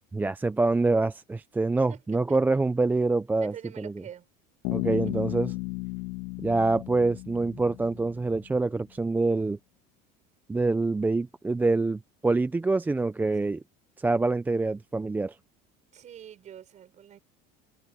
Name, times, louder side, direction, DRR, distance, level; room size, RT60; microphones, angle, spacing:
voice 1, 0.1-3.9 4.7-5.5 6.4-9.6 10.5-13.6 14.0-15.4, right 3 dB, 10° right, 0.5 m, -26 dB
voice 2, 1.9-2.4 3.4-4.2 4.9-5.0 15.9-17.2, right 10 dB, 35° right, 6.5 m, -45 dB
Bass guitar, 4.6-8.3, left 23 dB, 80° left, 2.0 m, -34 dB
supercardioid pair, 130°, 20 cm